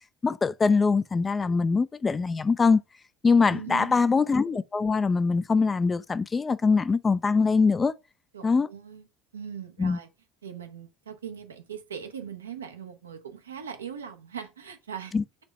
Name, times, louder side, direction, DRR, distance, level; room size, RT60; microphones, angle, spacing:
voice 1, 0.2-2.8 3.2-7.9 8.4-8.7 9.8-10.0 15.1-15.4, left 4 dB, 25° left, 0.3 m, -23 dB
voice 2, 3.5-4.0 8.3-9.1 9.3-10.1 10.4-15.1, right 8 dB, 90° right, 0.6 m, -40 dB
4.3 x 2.9 x 4.0 m
hypercardioid pair, 65°, 0 cm